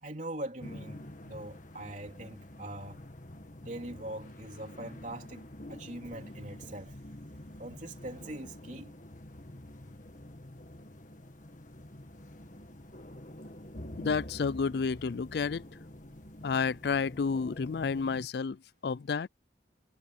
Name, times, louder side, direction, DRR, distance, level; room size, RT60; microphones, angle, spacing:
voice 1, 0.0-3.0 3.6-7.0 7.6-9.0 16.1-16.2, right 1 dB, 40° right, 3.8 m, -42 dB
sound 1, 0.6-18.3, left 1 dB, 40° left, 1.8 m, -47 dB
voice 2, 14.0-15.6 16.4-18.6 18.8-19.3, left 5 dB, 60° left, 0.4 m, -30 dB
head